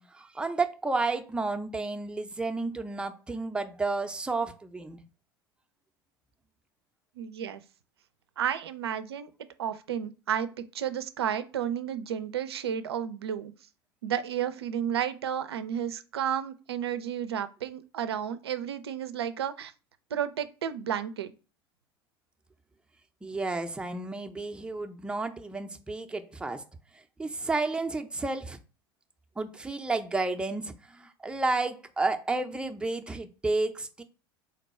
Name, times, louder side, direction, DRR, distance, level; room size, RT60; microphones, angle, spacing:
voice 1, 0.0-5.0 23.2-26.6 27.2-28.6 29.4-34.0, right 3 dB, 5° right, 0.4 m, -31 dB
voice 2, 7.2-7.6 8.4-9.3 9.6-10.5 10.7-13.5 14.0-19.7 20.1-21.3, right 9 dB, 85° right, 0.4 m, -32 dB
3.7 x 2.2 x 4.1 m
hypercardioid pair, 80°, 13 cm